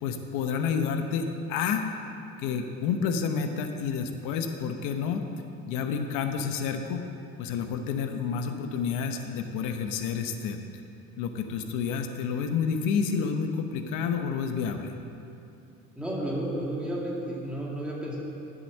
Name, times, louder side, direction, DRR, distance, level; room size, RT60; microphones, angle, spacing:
voice 1, 0.0-1.8 2.4-5.2 5.7-7.0 7.4-10.6 11.2-14.9, left 6 dB, 85° left, 6 dB, 0.9 m, -29 dB
voice 2, 16.0-18.2, right 1 dB, 5° right, -5 dB, 2.0 m, -32 dB
11.5 x 7.0 x 7.4 m, 2.7 s
cardioid pair, 170°, 31 cm